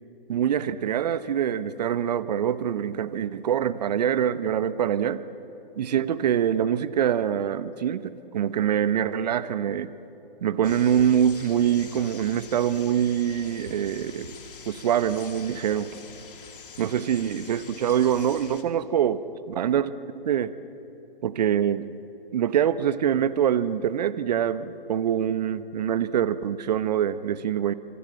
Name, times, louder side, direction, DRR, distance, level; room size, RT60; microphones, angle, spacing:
voice 1, 0.3-5.2 5.8-9.9 10.4-14.4 14.6-15.9 16.8-19.2 19.6-20.5 21.2-21.9 22.3-27.7, right 9 dB, 45° right, 14 dB, 1.1 m, -24 dB
sound 1, 10.6-18.6, left 5 dB, 65° left, 2.7 m, -45 dB
28.5 x 25.5 x 7.7 m, 3.0 s
figure-of-eight pair, 135°, 29 cm